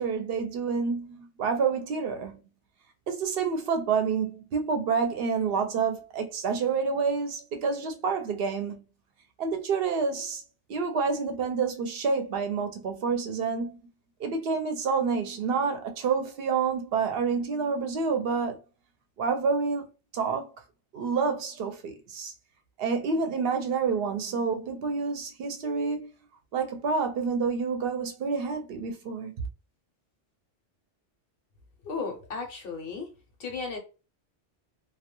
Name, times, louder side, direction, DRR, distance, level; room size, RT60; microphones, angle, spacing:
voice 1, 0.0-2.3 3.1-8.8 9.4-10.4 10.7-13.8 14.2-18.6 19.2-19.9 20.1-20.5 20.9-22.3 22.8-26.1 26.5-29.3, right 5 dB, 65° right, 0.7 m, -28 dB
voice 2, 31.8-33.1 33.4-33.8, left 4 dB, 60° left, 0.8 m, -34 dB
2.2 x 2.2 x 2.9 m
omnidirectional pair, 1.2 m